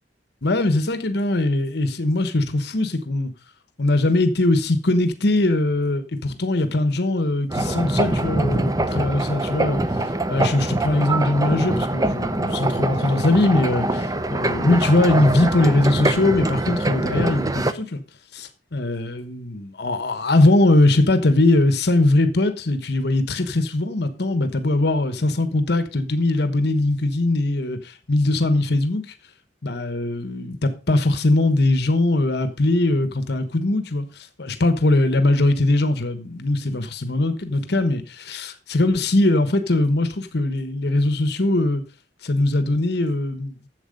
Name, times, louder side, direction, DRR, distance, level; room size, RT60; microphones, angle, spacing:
voice 1, 0.4-3.3 3.8-9.8 10.3-18.0 18.3-29.0 29.6-41.8 42.2-43.5, left 2 dB, 65° left, 1.2 m, -21 dB
sound 1, 7.5-17.7, right 2 dB, 20° right, 0.7 m, -24 dB
11.5 x 7.7 x 5.3 m
head